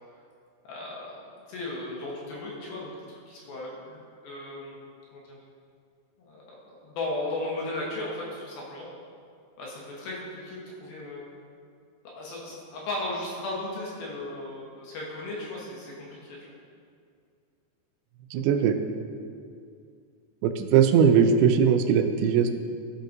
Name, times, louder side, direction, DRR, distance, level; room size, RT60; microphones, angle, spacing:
voice 1, 0.7-1.2 1.5-4.8 5.1-5.4 6.2-8.9 9.6-11.3 12.1-16.5, left 2 dB, 70° left, -4 dB, 2.7 m, -36 dB
voice 2, 18.3-18.8 20.4-22.6, right 7 dB, 85° right, 8 dB, 2.7 m, -20 dB
13.0 x 6.4 x 2.6 m, 2.3 s
omnidirectional pair, 4.9 m